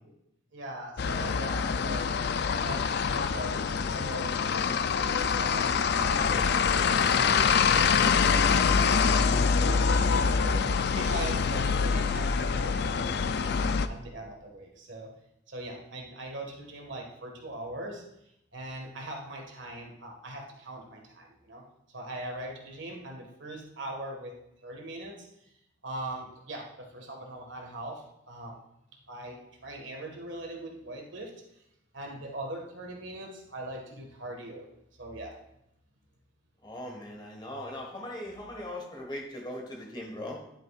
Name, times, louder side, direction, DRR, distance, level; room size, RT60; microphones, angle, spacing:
voice 1, 0.5-2.1 2.5-4.4 4.6-7.6 8.1-8.8 9.2-9.3 9.6-13.6 13.9-15.1 15.5-18.0 18.5-21.6 21.9-25.3 25.8-28.6 29.1-31.3 31.9-34.7 35.0-35.4, right 1 dB, 70° right, 1 dB, 1.7 m, -41 dB
sound 1, 1.0-13.9, left 5 dB, 60° left, 0.4 m, -25 dB
voice 2, 36.6-40.4, left 1 dB, 25° left, 1 dB, 1.6 m, -39 dB
10.5 x 9.2 x 2.5 m, 0.80 s
head